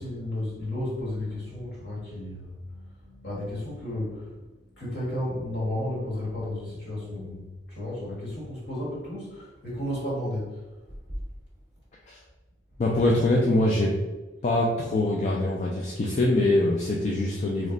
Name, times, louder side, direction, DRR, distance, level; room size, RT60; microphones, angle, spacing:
voice 1, 0.0-10.6, left 1 dB, 60° left, -6 dB, 1.4 m, -33 dB
voice 2, 12.8-13.9 14.4-17.7, left 2 dB, 40° left, -3 dB, 0.3 m, -23 dB
3.1 x 2.1 x 3.7 m, 1.2 s
head